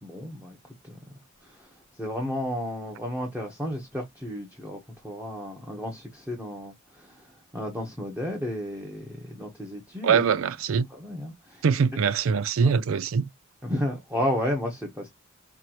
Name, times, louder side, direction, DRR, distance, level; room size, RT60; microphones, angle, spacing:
voice 1, 0.0-0.6 0.8-10.2 10.9-11.6 12.6-12.8 13.6-15.1, left 1 dB, 10° right, 1.1 m, -33 dB
voice 2, 10.0-10.9 11.6-13.3, right 6 dB, 85° right, 0.4 m, -23 dB
5.8 x 2.6 x 3.0 m
head